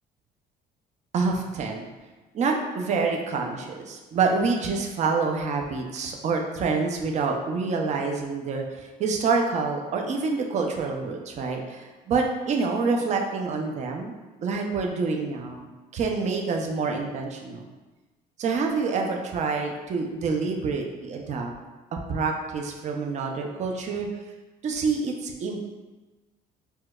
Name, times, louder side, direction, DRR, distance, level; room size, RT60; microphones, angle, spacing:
voice 1, 1.1-1.9 2.3-14.1 14.4-17.7 18.4-21.5 21.9-24.1 24.6-25.6, right 4 dB, 45° right, 2 dB, 0.5 m, -27 dB
4.4 x 2.2 x 2.3 m, 1.2 s
cardioid pair, 110°, 17 cm